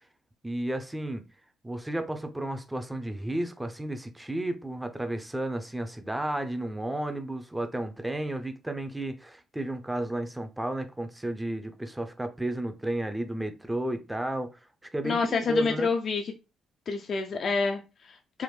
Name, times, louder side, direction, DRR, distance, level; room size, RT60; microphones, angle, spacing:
voice 1, 0.4-1.2 1.6-15.9, right 1 dB, 10° right, 0.5 m, -33 dB
voice 2, 15.0-16.2 16.9-18.4, left 4 dB, 55° left, 0.4 m, -28 dB
3.4 x 2.0 x 3.1 m
cardioid pair, 90°, 0 cm